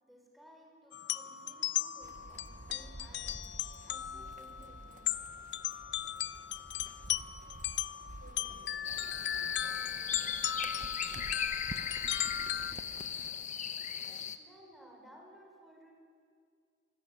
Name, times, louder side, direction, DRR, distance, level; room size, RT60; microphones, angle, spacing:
voice 1, 0.0-3.5 3.8-5.1 14.4-15.9, equal, ahead, 0 dB, 5.6 m, -58 dB
sound 1, 0.9-12.7, left 11 dB, 65° left, 0.7 m, -37 dB
sound 2, 2.0-13.3, right 2 dB, 45° right, 1.0 m, -50 dB
voice 2, 8.1-9.6 10.5-11.7, right 2 dB, 65° right, -4 dB, 5.5 m, -60 dB
sound 3, 8.8-14.4, left 7 dB, 40° left, 1.1 m, -38 dB
25.0 x 25.0 x 9.5 m, 2.2 s
head